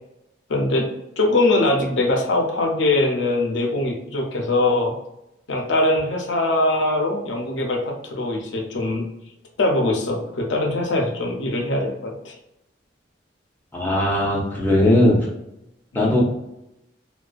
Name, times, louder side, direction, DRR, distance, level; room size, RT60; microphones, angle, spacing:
voice 1, 0.5-0.9 1.2-4.9 5.5-9.1 9.6-12.3 15.9-16.1, left 2 dB, 75° left, 1 dB, 0.5 m, -22 dB
voice 2, 13.7-15.2 15.9-16.2, left 1 dB, 10° left, -5 dB, 0.5 m, -18 dB
2.4 x 2.2 x 2.3 m, 0.85 s
head